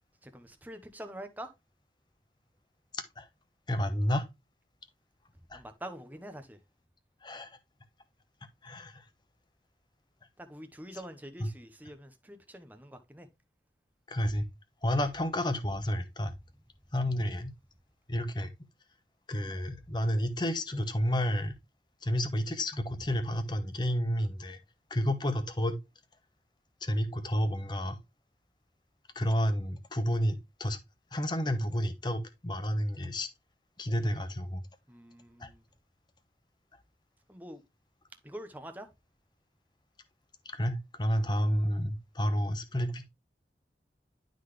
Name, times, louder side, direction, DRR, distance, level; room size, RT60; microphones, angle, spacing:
voice 1, 0.2-1.5 5.5-6.6 10.4-13.3 34.9-35.6 37.3-37.6 38.2-38.9, right 1 dB, 10° right, 0.9 m, -45 dB
voice 2, 3.7-4.2 5.5-5.6 7.2-7.5 8.6-9.0 11.4-11.5 14.1-14.4 14.8-16.3 16.9-17.5 18.1-18.5 19.3-21.5 22.0-24.6 24.9-25.8 26.8-28.0 29.1-30.8 31.1-33.3 33.8-34.6 35.4-35.5 40.5-43.1, equal, 25° left, 0.9 m, -30 dB
11.5 x 3.9 x 3.3 m
head